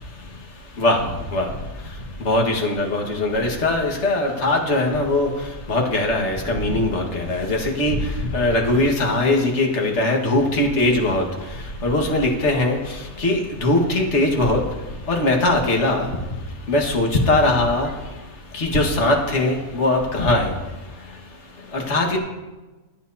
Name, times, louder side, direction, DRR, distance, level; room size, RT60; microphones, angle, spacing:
voice 1, 2.3-5.3 5.7-8.0 8.3-11.2 11.8-12.8 13.2-14.6 15.1-16.1 16.7-17.9 18.5-20.5 21.7-22.2, left 2 dB, 50° left, 1 dB, 1.9 m, -20 dB
26.0 x 9.0 x 2.8 m, 1.2 s
omnidirectional pair, 1.6 m